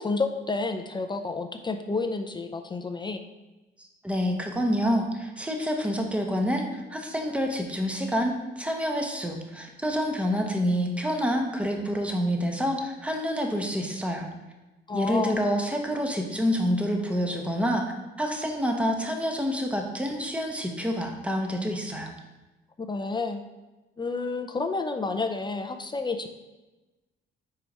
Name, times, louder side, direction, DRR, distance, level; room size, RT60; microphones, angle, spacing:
voice 1, 0.0-3.2 14.9-15.4 22.8-23.4 24.0-26.3, left 3 dB, 25° left, 6 dB, 0.5 m, -30 dB
voice 2, 3.8-14.3 14.9-17.8 18.2-22.1, equal, 5° right, 2 dB, 1.0 m, -27 dB
4.7 x 4.4 x 5.3 m, 1.1 s
cardioid pair, 90°, 20 cm